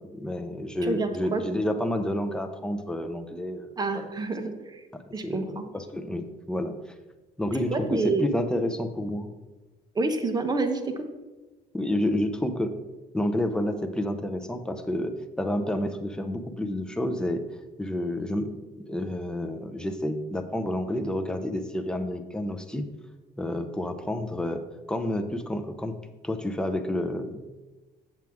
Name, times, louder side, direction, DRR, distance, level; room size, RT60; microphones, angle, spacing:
voice 1, 0.1-3.7 3.9-4.1 4.9-6.7 7.4-9.3 11.7-12.8 13.1-17.4 17.8-18.5 18.9-22.9 23.4-24.6 24.9-25.9 26.2-27.5, left 1 dB, 5° left, 6 dB, 0.7 m, -29 dB
voice 2, 0.8-1.4 3.8-4.8 5.1-5.6 7.7-8.2 9.9-10.9, right 3 dB, 25° right, 6 dB, 1.0 m, -28 dB
7.7 x 7.2 x 3.6 m, 1.2 s
cardioid pair, 110°, 17 cm